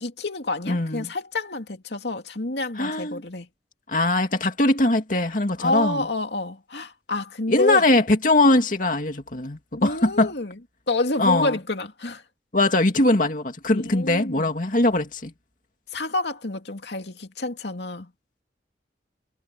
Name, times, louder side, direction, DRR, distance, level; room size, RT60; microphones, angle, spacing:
voice 1, 0.0-3.5 5.6-7.8 9.8-10.5 10.9-12.2 13.7-14.4 15.9-18.1, left 2 dB, 75° left, 2.6 m, -28 dB
voice 2, 0.7-1.1 2.7-3.2 3.9-6.1 7.5-10.3 11.2-11.6 12.5-15.3, left 2 dB, 50° left, 2.3 m, -21 dB
head